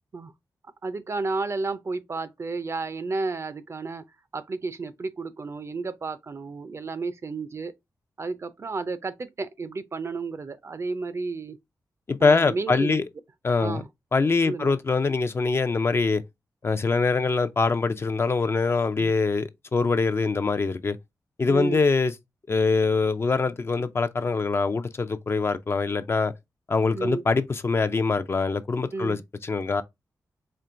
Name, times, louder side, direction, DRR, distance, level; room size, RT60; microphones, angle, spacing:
voice 1, 0.8-4.0 4.3-7.7 8.2-11.6 12.2-13.0 13.6-13.9 14.4-14.8 19.0-19.1 21.5-21.8 26.9-27.2 28.9-29.2, right 3 dB, 40° right, 0.4 m, -32 dB
voice 2, 12.1-13.0 13.4-13.8 14.1-16.2 16.6-21.0 21.4-22.1 22.5-26.3 26.7-29.8, left 4 dB, 35° left, 0.4 m, -24 dB
4.4 x 2.9 x 2.4 m
wide cardioid pair, 105°, 7 cm